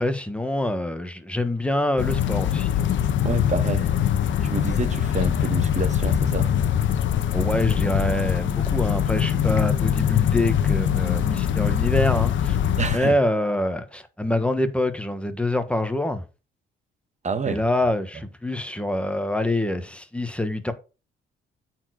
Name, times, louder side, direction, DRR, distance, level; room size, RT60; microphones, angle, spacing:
voice 1, 0.0-2.7 7.3-12.6 12.9-16.2 17.5-20.7, left 1 dB, 5° left, 1.4 m, -25 dB
Ambience Mountain Outdoor Mirador Torrebaro, 2.0-13.0, left 9 dB, 70° left, 1.1 m, -22 dB
voice 2, 3.2-3.9 4.4-6.5 12.8-13.2 17.2-17.6, right 5 dB, 35° right, 1.2 m, -28 dB
8.7 x 4.5 x 4.8 m
cardioid pair, 90°, 20 cm